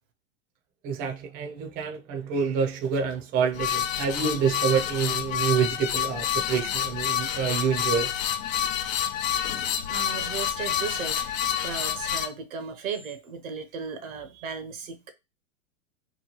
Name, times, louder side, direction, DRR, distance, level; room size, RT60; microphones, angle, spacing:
voice 1, 0.8-8.1, right 6 dB, 25° right, 0.3 m, -27 dB
sound 1, 3.5-12.3, left 9 dB, 80° left, 0.6 m, -28 dB
voice 2, 9.9-15.1, right 6 dB, 90° right, 0.8 m, -36 dB
2.9 x 2.2 x 2.8 m
hypercardioid pair, 120°, 40 cm